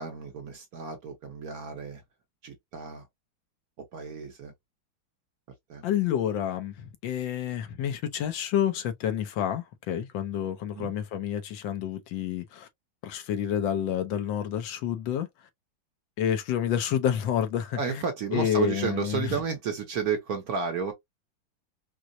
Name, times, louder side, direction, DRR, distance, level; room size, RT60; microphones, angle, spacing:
voice 1, 0.0-2.0 2.4-3.1 3.8-4.5 5.7-5.8 10.7-10.9 17.8-20.9, right 6 dB, 60° right, 1.0 m, -32 dB
voice 2, 5.8-12.7 13.0-15.3 16.2-18.0 18.3-19.3, left 9 dB, 75° left, 1.4 m, -29 dB
4.5 x 2.0 x 2.5 m
omnidirectional pair, 2.1 m